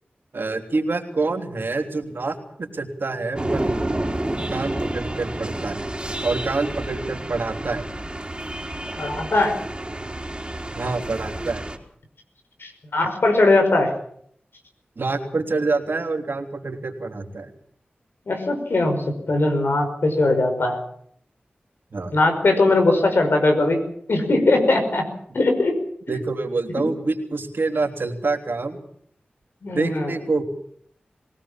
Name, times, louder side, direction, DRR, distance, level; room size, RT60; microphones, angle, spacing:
voice 1, 0.3-3.7 4.5-5.8 6.2-7.8 10.7-11.6 15.0-17.5 21.9-22.1 26.1-28.8 29.7-30.4, right 3 dB, 70° right, 4 dB, 3.2 m, -26 dB
sound 1, 3.3-11.8, right 1 dB, 25° right, 3.9 m, -29 dB
voice 2, 9.0-9.6 12.6-13.9 18.3-20.8 22.1-23.8 24.1-25.1 25.3-25.8 26.1-26.2 29.6-30.1, left 2 dB, 75° left, 5 dB, 5.4 m, -20 dB
22.5 x 17.5 x 7.3 m, 0.65 s
cardioid pair, 45°, 4 cm